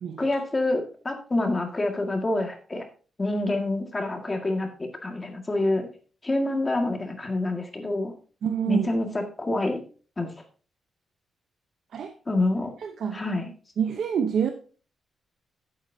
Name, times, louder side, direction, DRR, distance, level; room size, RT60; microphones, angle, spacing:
voice 1, 0.2-2.9 3.2-5.9 6.2-8.1 8.6-9.8 10.2-10.3 12.3-12.7 13.1-13.5, left 2 dB, 20° left, 3 dB, 1.9 m, -27 dB
voice 2, 8.4-8.9 11.9-12.1 12.8-13.2 13.8-14.5, right 7 dB, 65° right, 5 dB, 0.8 m, -26 dB
12.0 x 8.8 x 2.8 m, 0.39 s
cardioid pair, 125°, 0 cm